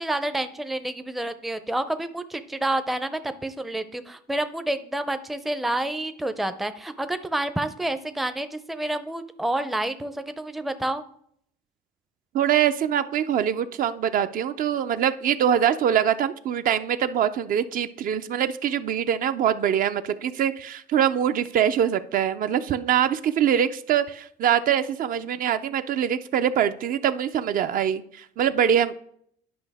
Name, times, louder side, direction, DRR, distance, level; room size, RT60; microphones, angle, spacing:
voice 1, 0.0-11.0, right 1 dB, ahead, 10 dB, 0.4 m, -29 dB
voice 2, 12.3-28.9, right 9 dB, 55° right, 11 dB, 0.4 m, -23 dB
10.5 x 5.2 x 3.5 m, 0.67 s
cardioid pair, 110°, 17 cm